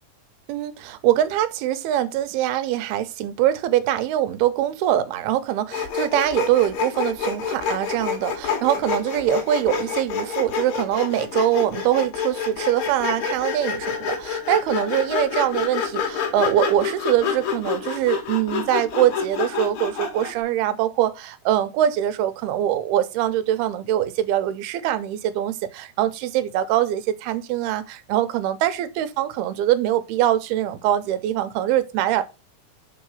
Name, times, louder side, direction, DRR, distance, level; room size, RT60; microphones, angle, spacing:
voice 1, 0.5-32.2, right 12 dB, 85° right, 2.6 m, -23 dB
Sawing, 5.7-20.4, left 6 dB, 65° left, 3.3 m, -28 dB
6.1 x 4.7 x 5.5 m
omnidirectional pair, 4.5 m